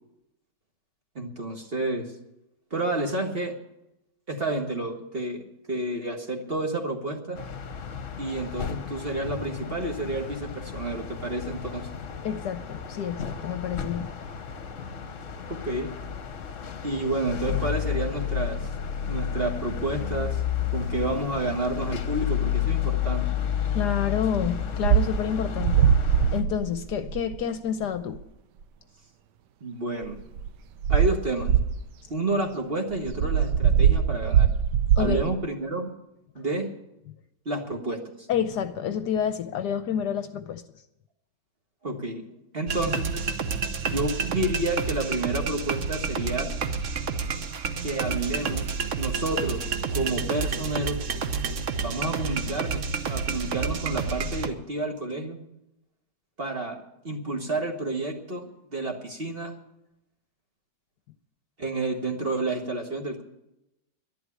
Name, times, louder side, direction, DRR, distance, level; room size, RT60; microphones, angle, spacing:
voice 1, 1.1-2.1 2.7-3.5 4.3-5.4 5.7-7.4 8.2-11.9 15.5-15.9 16.8-18.6 19.1-20.4 20.7-23.2 29.6-30.2 30.9-31.5 32.1-34.5 35.0-35.9 36.3-36.7 37.4-38.3 41.8-42.3 42.5-43.3 43.9-46.5 47.8-49.6 49.9-51.0 51.8-55.4 56.4-56.8 57.0-59.5 61.6-63.2, right 2 dB, 30° right, 3 dB, 1.7 m, -30 dB
sound 1, 7.3-26.4, left 8 dB, 50° left, 1.3 m, -31 dB
voice 2, 12.2-14.1 23.7-25.9 26.3-28.2 35.0-35.2 36.4-36.5 38.3-40.6, left 8 dB, 70° left, 10 dB, 1.2 m, -29 dB
sound 2, 24.4-24.5 24.8-25.2 25.6-27.4 28.1-28.2 30.0-30.5 30.8-31.9 32.9-35.3, right 8 dB, 70° right, 1.2 m, -22 dB
sound 3, 42.7-54.5, right 5 dB, 50° right, 1.1 m, -29 dB
11.5 x 11.5 x 8.5 m, 0.88 s
omnidirectional pair, 2.0 m